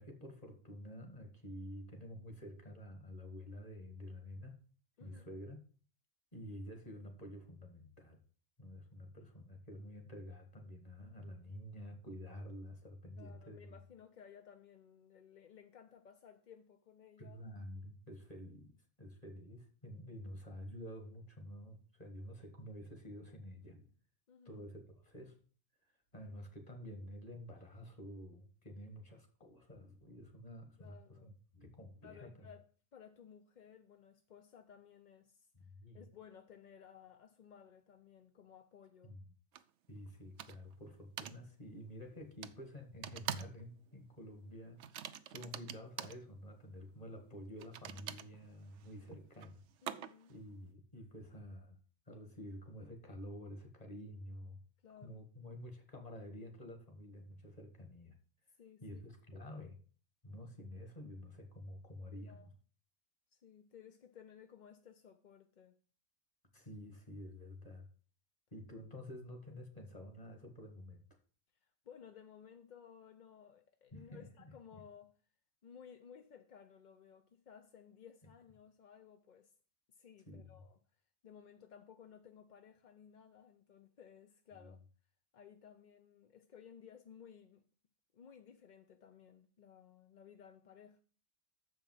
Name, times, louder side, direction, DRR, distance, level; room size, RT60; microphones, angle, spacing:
voice 1, 0.0-4.6 5.0-5.6 6.3-8.2 8.6-13.6 17.2-18.7 19.0-23.9 24.5-25.4 26.1-32.5 35.6-36.0 39.0-39.2 39.9-49.6 50.3-51.8 52.1-54.6 55.0-58.2 58.8-59.8 60.2-62.5 66.5-67.9 68.5-71.0 73.9-74.8 80.3-80.6 84.6-84.7, equal, 30° left, 1.9 m, -50 dB
voice 2, 13.2-17.4 24.3-24.7 30.8-31.4 32.0-32.6 32.9-35.7 35.9-39.2 49.8-50.3 54.8-55.3 58.6-59.0 62.1-62.5 63.3-65.8 71.6-75.1 75.6-79.5 79.9-80.8 81.2-84.8 85.3-87.6 88.1-91.0, left 8 dB, 50° left, 0.6 m, -58 dB
sound 1, 39.5-39.6 40.4-40.7 41.2-41.4 42.4-42.6 43.0-43.6 43.9-44.1 44.8-46.2 47.6-50.3, right 10 dB, 70° right, 0.9 m, -45 dB
7.1 x 5.3 x 7.4 m
omnidirectional pair, 1.4 m